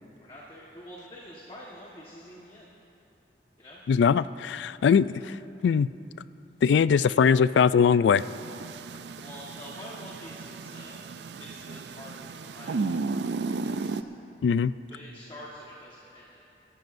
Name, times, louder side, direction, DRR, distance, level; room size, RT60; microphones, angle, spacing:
voice 1, 0.2-2.7 3.6-3.8 6.9-7.1 9.2-11.1 11.4-13.9 14.9-16.4, left 1 dB, 30° left, -5 dB, 1.4 m, -46 dB
voice 2, 3.9-5.4 5.6-5.9 6.6-8.2 14.4-14.7, left 6 dB, 80° left, 17 dB, 0.3 m, -21 dB
sound 1, 8.2-14.0, right 4 dB, 75° right, 0.4 m, -34 dB
27.0 x 13.0 x 2.6 m, 2.9 s
head